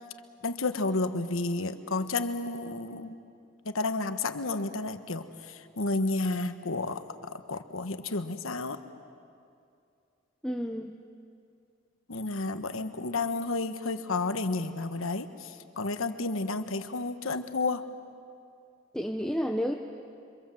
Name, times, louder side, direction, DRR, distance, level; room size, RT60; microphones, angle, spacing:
voice 1, 0.4-3.2 3.6-5.2 5.8-7.0 7.3-8.8 12.1-15.5 15.8-17.8, left 3 dB, 85° left, 9 dB, 1.3 m, -31 dB
voice 2, 10.4-11.0 18.9-19.7, equal, 5° left, 2 dB, 0.9 m, -30 dB
28.5 x 25.5 x 7.7 m, 2.5 s
head